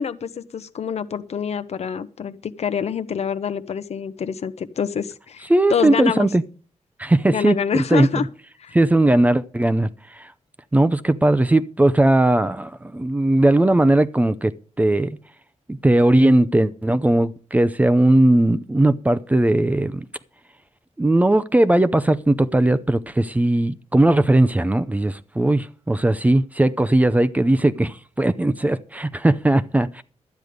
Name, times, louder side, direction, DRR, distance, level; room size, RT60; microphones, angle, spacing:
voice 1, 0.0-6.3 7.3-8.3 8.6-8.7, left 7 dB, 65° left, 0.8 m, -26 dB
voice 2, 5.5-6.4 7.0-8.2 8.7-10.3 10.7-14.5 14.8-15.2 15.7-20.0 21.0-30.0, right 1 dB, 10° right, 0.5 m, -18 dB
12.5 x 9.4 x 5.1 m
wide cardioid pair, 155°, 12 cm